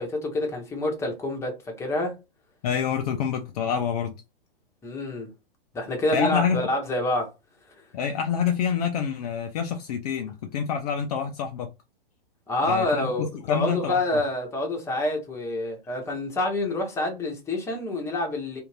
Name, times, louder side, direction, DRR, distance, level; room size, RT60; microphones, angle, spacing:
voice 1, 0.0-2.2 4.8-5.3 5.7-7.3 12.5-18.6, left 1 dB, 10° left, 0.8 m, -27 dB
voice 2, 2.6-4.1 6.1-6.6 7.9-11.7 12.6-14.0, left 7 dB, 40° left, 0.4 m, -27 dB
2.5 x 2.4 x 3.1 m
figure-of-eight pair, 115°, 30 cm